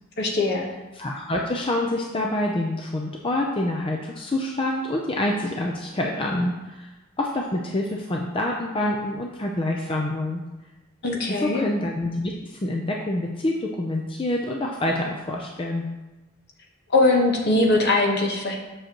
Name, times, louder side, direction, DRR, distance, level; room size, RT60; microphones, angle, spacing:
voice 1, 0.2-0.7 11.0-11.6 16.9-18.6, left 2 dB, 55° left, 1 dB, 1.1 m, -21 dB
voice 2, 0.9-6.9 7.2-10.4 11.3-15.9, left 1 dB, 25° left, 0 dB, 0.5 m, -27 dB
7.6 x 6.4 x 3.0 m, 1.1 s
head